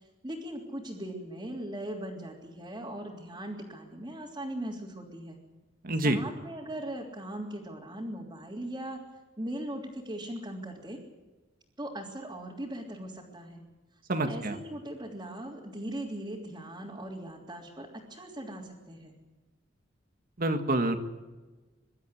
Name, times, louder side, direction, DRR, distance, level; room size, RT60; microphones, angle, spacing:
voice 1, 0.2-5.4 6.0-9.0 9.4-11.0 11.8-13.6 14.1-19.1, right 1 dB, 20° right, -5 dB, 3.4 m, -39 dB
voice 2, 5.8-6.2 14.1-14.6 20.4-21.0, right 1 dB, 50° right, 6 dB, 1.8 m, -27 dB
25.0 x 12.5 x 9.9 m, 1.2 s
head